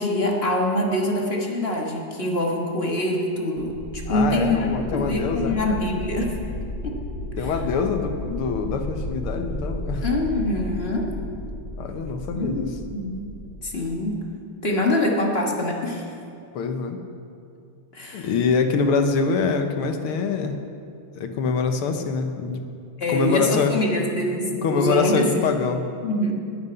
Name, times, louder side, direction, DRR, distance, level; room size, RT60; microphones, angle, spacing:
voice 1, 0.0-6.3 6.8-7.0 7.4-7.5 10.0-11.1 12.3-13.3 13.6-14.2 14.6-16.1 17.9-18.3 23.0-25.5 26.0-26.3, left 1 dB, 30° left, 0 dB, 1.6 m, -24 dB
sound 1, 3.6-14.2, left 1 dB, ahead, 2.4 m, -33 dB
voice 2, 4.1-5.6 7.4-10.0 11.8-12.7 16.5-17.0 18.1-20.6 21.2-22.6 23.1-23.8 24.6-25.9, left 5 dB, 80° left, 6 dB, 1.9 m, -24 dB
11.5 x 9.5 x 9.6 m, 2.5 s
omnidirectional pair, 2.4 m